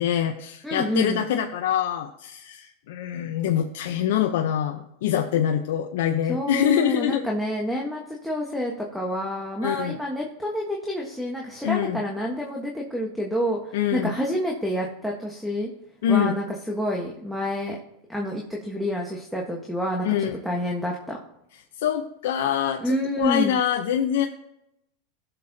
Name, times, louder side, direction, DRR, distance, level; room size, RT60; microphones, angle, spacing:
voice 1, 0.0-7.2 9.6-10.0 11.6-12.0 13.7-14.1 16.0-16.4 20.0-20.4 21.8-24.3, left 9 dB, 75° left, 4 dB, 0.7 m, -24 dB
voice 2, 0.6-1.2 6.3-15.7 16.1-17.8 18.1-21.2 22.8-23.6, equal, ahead, -1 dB, 1.3 m, -28 dB
16.0 x 6.7 x 2.8 m, 0.81 s
supercardioid pair, 130°, 0 cm